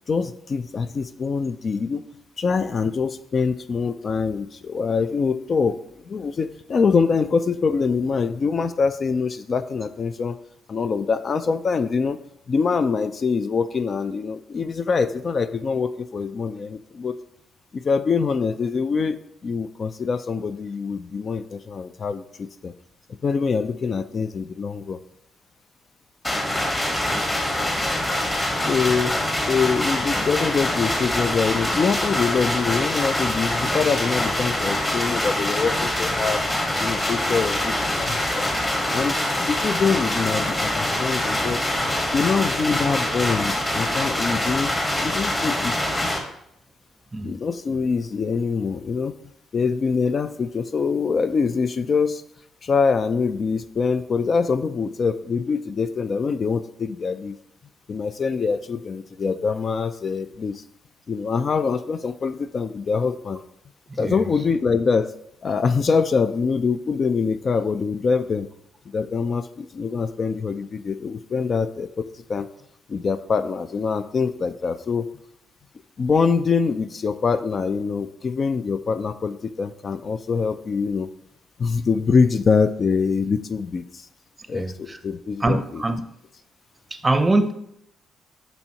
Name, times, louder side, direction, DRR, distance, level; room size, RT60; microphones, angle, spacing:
voice 1, 0.1-2.0 2.4-5.8 6.0-10.4 10.7-12.2 12.5-17.2 17.7-22.7 23.2-25.0 28.7-29.2 29.5-36.4 36.8-38.5 38.9-39.2 39.4-41.6 42.1-44.7 45.0-45.8 47.2-49.1 49.5-52.2 52.6-57.4 57.9-60.6 61.1-63.4 64.0-68.5 68.9-72.5 72.9-75.1 76.0-81.1 81.6-84.1 84.5-85.8, left 5 dB, 45° left, 12 dB, 0.3 m, -24 dB
sound 1, 26.2-46.2, left 1 dB, 20° left, 1.4 m, -24 dB
voice 2, 26.9-27.2 47.1-47.3 63.9-64.2 84.5-85.0 85.4-86.0 86.9-87.5, right 2 dB, 20° right, 9 dB, 0.6 m, -24 dB
6.9 x 5.5 x 2.9 m, 0.75 s
cardioid pair, 90°, 0 cm